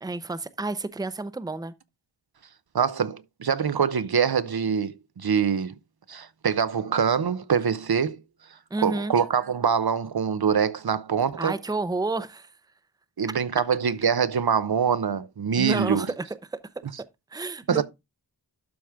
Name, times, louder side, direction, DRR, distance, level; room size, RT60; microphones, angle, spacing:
voice 1, 0.0-1.7 8.7-9.1 11.4-12.5 15.6-16.2 16.5-16.6 17.3-17.8, right 3 dB, 10° right, 0.7 m, -30 dB
voice 2, 2.7-5.7 6.1-8.2 8.8-11.5 13.2-16.1 17.7-17.8, right 7 dB, 60° right, 0.8 m, -24 dB
12.0 x 4.9 x 3.6 m
wide cardioid pair, 95°, 43 cm